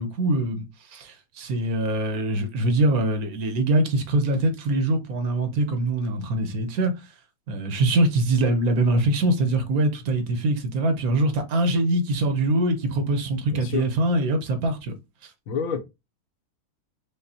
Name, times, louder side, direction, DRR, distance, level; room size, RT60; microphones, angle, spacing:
voice 1, 0.0-6.9 7.5-14.9, right 2 dB, 80° right, 1.3 m, -23 dB
voice 2, 13.5-13.8 15.5-15.8, left 6 dB, 75° left, 1.1 m, -27 dB
5.1 x 2.1 x 2.7 m
omnidirectional pair, 1.5 m